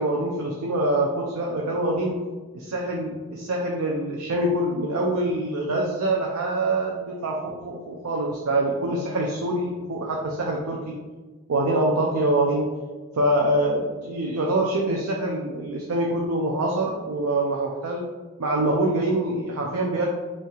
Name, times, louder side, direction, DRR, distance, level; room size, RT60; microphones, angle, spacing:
voice 1, 0.0-2.2 2.5-11.0 11.5-12.7 13.1-18.0 18.4-20.0, right 1 dB, 75° right, -1 dB, 0.5 m, -25 dB
5.4 x 3.2 x 2.4 m, 1.3 s
head